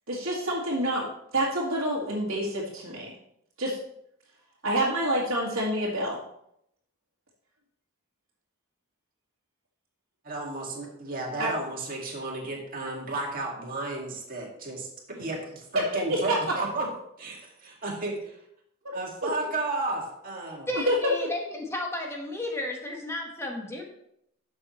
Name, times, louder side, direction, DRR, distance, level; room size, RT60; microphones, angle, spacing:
voice 1, 0.1-3.1 3.6-3.8 4.6-6.2 11.4-11.5 16.1-16.4 19.2-19.3 20.7-20.9, right 1 dB, 75° right, -8 dB, 2.1 m, -27 dB
voice 2, 10.2-14.9 15.2-16.9 17.2-18.4 18.9-20.7, right 2 dB, 45° right, -1 dB, 2.2 m, -33 dB
voice 3, 20.7-23.8, left 1 dB, 15° left, 1 dB, 1.5 m, -33 dB
11.0 x 6.9 x 3.2 m, 0.76 s
head